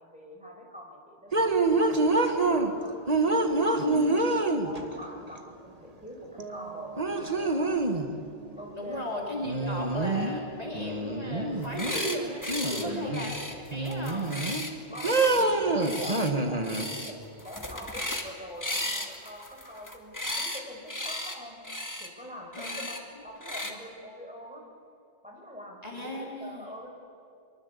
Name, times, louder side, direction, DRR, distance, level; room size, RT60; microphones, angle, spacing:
voice 1, 0.0-3.0 3.4-3.9 4.1-7.9 8.6-9.1 9.4-9.9 12.6-13.1 14.9-21.6 22.0-24.7 25.2-26.9, left 1 dB, 5° right, -1 dB, 5.4 m, -44 dB
sound 1, 1.3-2.7 3.1-5.0 6.4-6.5 7.0-8.1 9.4-10.4 10.7-12.0 12.5-13.3 13.7-14.6 15.0-16.8, right 2 dB, 35° right, 1.9 m, -26 dB
voice 2, 3.8-4.3 8.7-12.4 12.7-14.3 22.6-22.8 23.6-23.7 25.8-26.7, left 1 dB, 35° left, -2 dB, 3.4 m, -36 dB
Piano, 6.4-12.1, right 6 dB, 65° right, 3.0 m, -48 dB
sound 2, 11.6-12.2 12.4-12.8 13.1-15.4 15.8-16.3 16.6-17.1 17.4-18.3 18.6-20.6 20.9-21.4 21.6-22.1 22.5-23.0 23.4-23.7, left 1 dB, 15° left, 2.3 m, -35 dB
24.0 x 24.0 x 8.5 m, 2.6 s
omnidirectional pair, 1.1 m